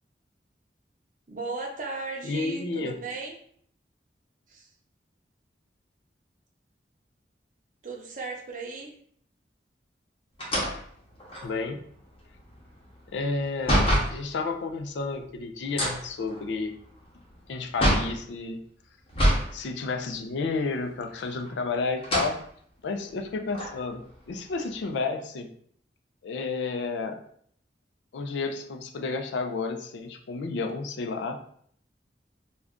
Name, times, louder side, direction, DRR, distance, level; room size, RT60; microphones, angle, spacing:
voice 1, 1.3-3.3 4.5-4.7 7.8-8.9, right 3 dB, 45° right, 0 dB, 0.6 m, -36 dB
voice 2, 2.3-2.9 11.4-11.8 13.1-16.7 17.5-18.6 19.5-22.4 22.8-25.5 26.2-27.2 28.1-31.4, left 4 dB, 85° left, 5 dB, 0.4 m, -31 dB
sound 1, 10.4-14.2 15.6-18.2 19.1-19.5 19.9-20.0 21.1-21.6 22.0-22.4 23.0-23.1 23.5-24.9, equal, 30° left, 0.8 m, -27 dB
2.4 x 2.2 x 3.5 m, 0.62 s
head